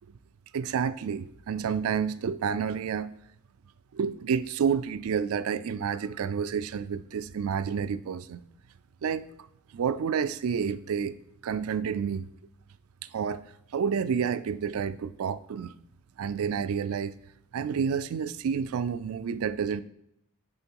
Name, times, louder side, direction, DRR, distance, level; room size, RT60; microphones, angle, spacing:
voice 1, 0.5-3.1 3.9-8.4 9.0-9.3 9.7-11.2 11.4-12.3 13.0-13.4 13.7-15.8 16.2-17.2 17.5-19.8, right 6 dB, 70° right, 0.4 m, -29 dB
8.8 x 3.7 x 4.5 m
head